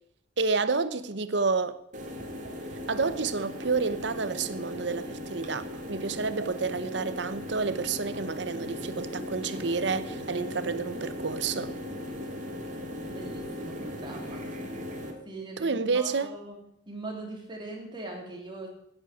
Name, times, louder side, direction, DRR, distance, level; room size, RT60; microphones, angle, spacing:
voice 1, 0.4-1.8 2.9-11.7 15.6-16.3, right 4 dB, 65° right, 0.9 m, -29 dB
sound 1, 1.9-15.1, left 1 dB, 40° right, 2.2 m, -38 dB
voice 2, 13.1-14.5 15.2-18.7, right 2 dB, 25° right, 3.2 m, -41 dB
10.0 x 9.6 x 9.0 m
head